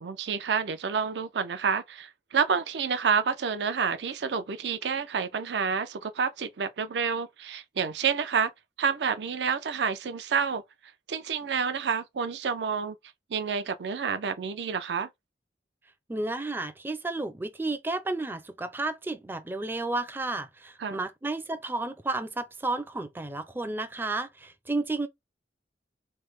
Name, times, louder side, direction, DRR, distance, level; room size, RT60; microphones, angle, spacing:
voice 1, 0.0-8.5 8.8-10.6 11.1-12.9 13.3-15.1 20.8-21.0, right 6 dB, 70° right, 0.5 m, -29 dB
voice 2, 16.1-25.1, right 2 dB, 10° right, 0.4 m, -32 dB
3.1 x 2.1 x 3.1 m
head